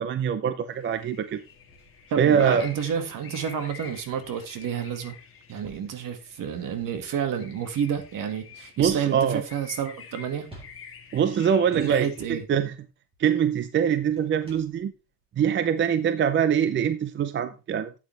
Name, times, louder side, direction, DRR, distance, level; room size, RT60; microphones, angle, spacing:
voice 1, 0.0-1.4 2.2-2.6 8.8-9.4 11.1-12.7 13.2-14.9 15.4-18.0, right 8 dB, 35° right, 0.5 m, -23 dB
sound 1, 0.7-12.3, left 6 dB, 35° left, 1.8 m, -48 dB
sound 2, 1.4-4.8 5.2-13.3 14.0-15.2 15.9-16.0, right 1 dB, 15° right, 4.0 m, -54 dB
voice 2, 2.1-5.2 5.5-10.5 11.7-12.5, right 8 dB, 60° right, 1.8 m, -30 dB
12.0 x 8.5 x 3.3 m
cardioid pair, 165°, 36 cm